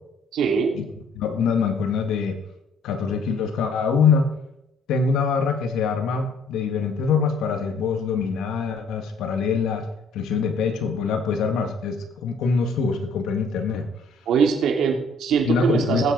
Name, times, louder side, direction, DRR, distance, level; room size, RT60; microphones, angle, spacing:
voice 1, 0.3-0.8 14.3-16.1, right 6 dB, 75° right, 2 dB, 2.8 m, -22 dB
voice 2, 1.1-2.4 2.8-4.3 4.9-9.9 10.1-13.9 15.5-16.1, left 5 dB, 85° left, 5 dB, 1.8 m, -24 dB
19.0 x 8.0 x 5.3 m, 0.85 s
cardioid pair, 90°, 0 cm